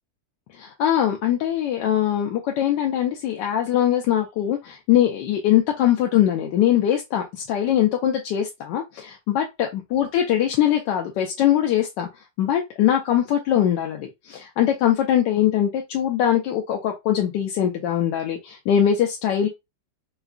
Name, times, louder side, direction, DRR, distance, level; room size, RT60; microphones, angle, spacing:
voice 1, 0.6-12.1 12.4-19.5, left 10 dB, 75° left, 1.2 m, -22 dB
4.7 x 2.2 x 2.4 m
omnidirectional pair, 2.0 m